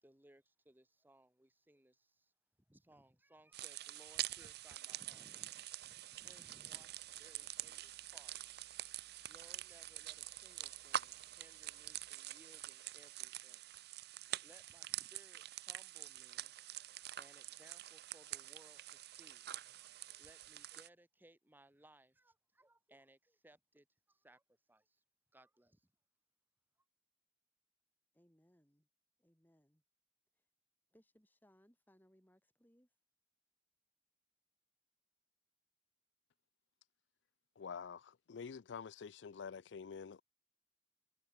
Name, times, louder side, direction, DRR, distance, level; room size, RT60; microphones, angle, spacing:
voice 1, 0.0-2.3 2.7-8.4 9.2-13.8 14.3-16.5 17.2-19.5 19.8-24.4 24.7-25.0 25.3-25.9, right 1 dB, 10° right, 1.3 m, -66 dB
sound 1, 3.5-20.9, right 12 dB, 60° right, 0.6 m, -46 dB
sound 2, 6.1-12.1, right 2 dB, 35° right, 7.5 m, -73 dB
voice 2, 28.1-28.9 29.2-29.8 30.9-32.9, equal, 10° left, 4.9 m, -70 dB
voice 3, 37.6-40.2, left 6 dB, 80° left, 0.4 m, -48 dB
head